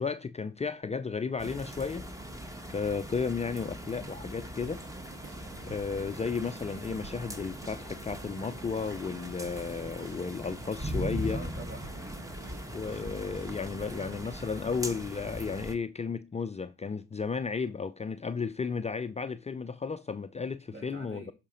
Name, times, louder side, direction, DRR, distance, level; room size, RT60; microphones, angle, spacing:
voice 1, 0.0-2.1 2.7-4.8 5.6-11.4 12.7-21.3, left 5 dB, 20° left, 0.5 m, -33 dB
sound 1, 1.4-15.8, equal, 10° right, 1.3 m, -40 dB
sound 2, 4.6-14.2, right 5 dB, 85° right, 2.0 m, -52 dB
voice 2, 11.3-12.7 20.7-21.3, right 1 dB, 40° right, 3.3 m, -47 dB
11.5 x 5.1 x 5.0 m
cardioid pair, 90°, 30 cm